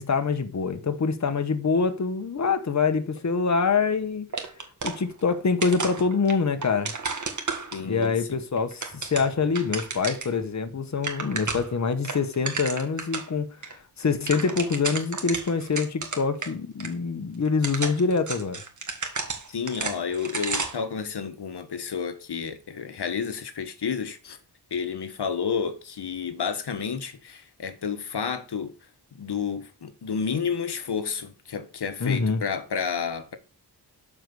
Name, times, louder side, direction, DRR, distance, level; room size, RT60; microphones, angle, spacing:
voice 1, 0.0-4.3 4.8-6.9 7.8-18.6 32.0-32.4, left 5 dB, 45° left, 1.3 m, -25 dB
sound 1, 4.3-5.4 5.6-8.1 8.6-10.4 10.7-10.8 11.0-11.8 12.0-13.3 13.6-13.7 14.0-16.5 16.8-16.9 17.5-20.9, right 4 dB, 45° right, 2.1 m, -32 dB
voice 2, 7.7-8.4 19.5-24.4 24.7-28.7 29.1-33.4, left 6 dB, 75° left, 1.4 m, -31 dB
12.0 x 4.9 x 7.0 m
wide cardioid pair, 120°, 40 cm